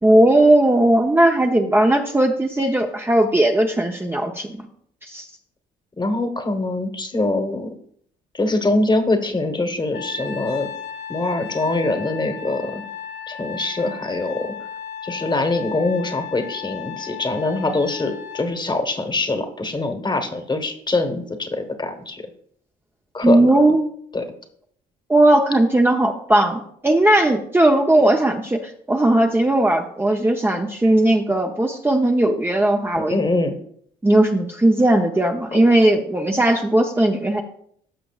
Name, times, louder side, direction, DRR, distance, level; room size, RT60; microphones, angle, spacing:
voice 1, 0.0-4.5 5.0-5.3 23.2-23.9 25.1-33.2 34.0-37.4, right 1 dB, 10° right, 2 dB, 0.8 m, -17 dB
voice 2, 6.0-7.7 8.3-10.7 11.1-12.8 13.3-14.5 15.0-22.2 23.1-23.5 24.1-24.3 32.9-33.6 35.5-35.6, left 2 dB, 20° left, 7 dB, 1.3 m, -23 dB
Trumpet, 9.9-18.5, left 9 dB, 65° left, 1.7 m, -35 dB
14.0 x 5.9 x 2.4 m, 0.64 s
supercardioid pair, 70°, 20 cm